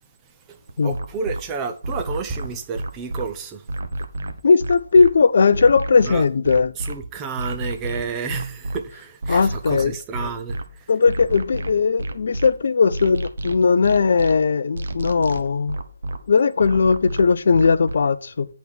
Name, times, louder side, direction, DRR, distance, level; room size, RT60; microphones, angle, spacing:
voice 1, 0.5-3.6 6.0-6.2 6.7-10.9, right 5 dB, 15° right, 0.7 m, -31 dB
sound 1, 0.7-1.4 1.8-3.3 3.7-5.1 5.5-6.9 7.4-8.8 9.2-10.6 11.1-12.5 12.9-14.3 14.8-16.2 16.6-18.0, right 1 dB, 60° right, 1.0 m, -29 dB
voice 2, 4.4-6.7 9.3-9.9 10.9-15.8 16.3-18.5, left 5 dB, 55° left, 0.5 m, -18 dB
8.3 x 4.1 x 6.2 m
figure-of-eight pair, 150°, 0 cm